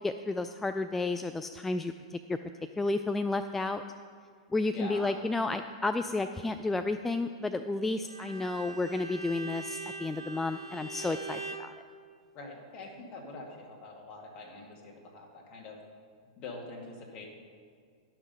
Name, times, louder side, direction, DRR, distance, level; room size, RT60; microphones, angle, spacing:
voice 1, 0.0-2.4 2.8-3.8 4.5-11.7, left 2 dB, 10° left, 8 dB, 0.3 m, -32 dB
voice 2, 4.7-5.2 12.3-15.8 16.4-17.3, left 2 dB, 40° left, 0 dB, 2.1 m, -44 dB
Bowed string instrument, 8.0-11.7, right 4 dB, 90° right, 0.8 m, -42 dB
11.0 x 6.1 x 5.4 m, 2.1 s
hypercardioid pair, 105°, 3 cm